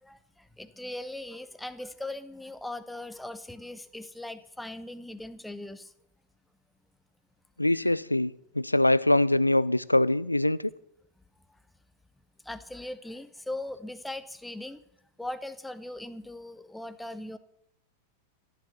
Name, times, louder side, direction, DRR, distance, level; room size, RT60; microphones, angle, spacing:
voice 1, 0.0-5.9 7.7-7.8 12.4-14.8 15.2-17.4, left 1 dB, 5° left, 1.0 m, -39 dB
voice 2, 7.6-10.6, left 1 dB, 85° left, 0.5 m, -23 dB
14.5 x 11.5 x 6.8 m
figure-of-eight pair, 90°, 0 cm